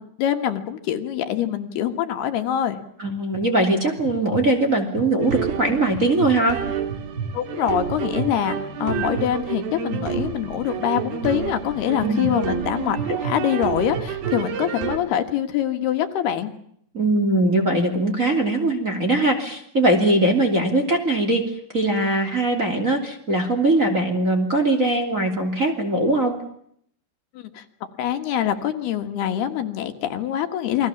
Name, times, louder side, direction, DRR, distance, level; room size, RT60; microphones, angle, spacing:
voice 1, 0.0-2.8 7.3-16.5 27.4-27.6 28.0-30.9, left 10 dB, 75° left, 7 dB, 3.6 m, -24 dB
sound 1, 3.0-3.4 4.0-4.4 4.9-5.4 5.9-6.3 6.9-7.3 7.9-8.3 8.9-9.2 9.9-10.3 11.0-11.3 12.0-12.3 12.9-13.3 13.9-14.3, right 6 dB, 20° left, 2.5 m, -31 dB
voice 2, 3.0-6.6 12.0-12.3 16.9-26.4, right 2 dB, 20° right, 4 dB, 2.8 m, -21 dB
sound 2, 5.2-15.0, right 8 dB, 65° right, 4.2 m, -29 dB
28.5 x 22.0 x 7.3 m, 0.68 s
omnidirectional pair, 4.7 m